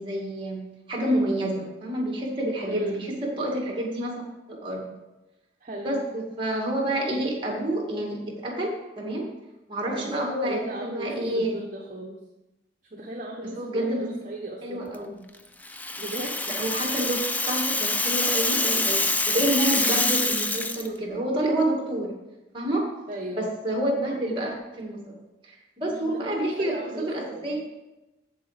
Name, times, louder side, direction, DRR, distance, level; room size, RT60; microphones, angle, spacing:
voice 1, 0.0-4.2 4.5-5.0 5.8-9.3 9.7-11.6 13.4-14.1 14.6-15.3 16.5-22.2 22.5-22.9 23.4-25.2 25.4-27.6, right 1 dB, 30° right, -1 dB, 2.1 m, -28 dB
voice 2, 2.6-3.1 5.6-6.0 9.9-12.2 12.9-14.9 16.0-16.4 23.1-23.5 26.0-27.5, right 1 dB, 45° right, 0 dB, 0.9 m, -36 dB
Rattle (instrument), 15.6-20.9, left 2 dB, 10° left, 0.4 m, -26 dB
8.1 x 7.4 x 5.0 m, 1.0 s
head